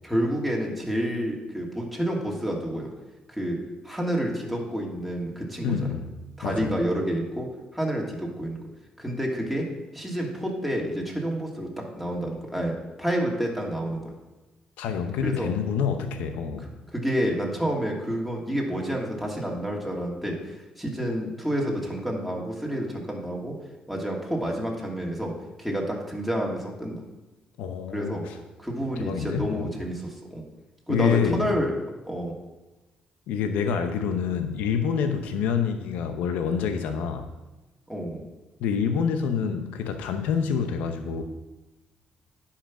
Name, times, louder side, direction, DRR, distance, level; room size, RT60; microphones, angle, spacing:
voice 1, 0.0-2.9 3.3-3.6 3.8-5.9 6.4-7.5 7.7-8.6 9.0-9.6 9.9-12.7 13.0-14.0 15.2-15.5 16.9-20.4 20.8-23.5 23.9-25.3 25.6-27.0 27.9-28.2 28.6-30.4 30.9-31.7 32.1-32.3 37.9-38.2, equal, ahead, -2 dB, 2.8 m, -29 dB
voice 2, 5.6-6.2 6.4-6.8 14.8-16.7 27.6-28.4 29.0-29.7 30.9-31.5 33.3-37.3 38.6-41.2, left 7 dB, 90° left, 7 dB, 0.7 m, -27 dB
10.0 x 5.8 x 6.0 m, 1.1 s
cardioid pair, 80°, 3 cm